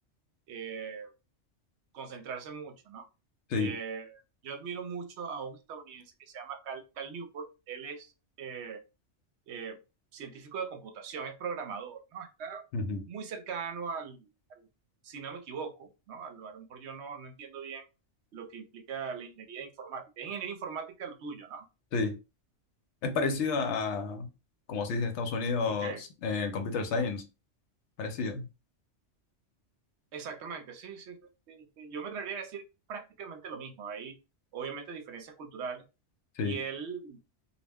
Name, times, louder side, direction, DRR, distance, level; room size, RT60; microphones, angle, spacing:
voice 1, 0.5-1.1 1.9-3.0 3.6-8.1 8.4-8.8 9.5-9.8 10.1-12.6 13.1-14.7 15.0-17.9 18.3-21.7 25.6-26.0 30.1-31.2 31.5-32.6 32.9-34.2 34.5-35.8 36.4-37.2, right 6 dB, 70° right, 0.8 m, -40 dB
voice 2, 23.0-24.3 24.7-25.9 26.2-27.2 28.0-28.5 36.4-36.6, left 4 dB, 75° left, 0.9 m, -30 dB
2.3 x 2.1 x 3.4 m
omnidirectional pair, 1.2 m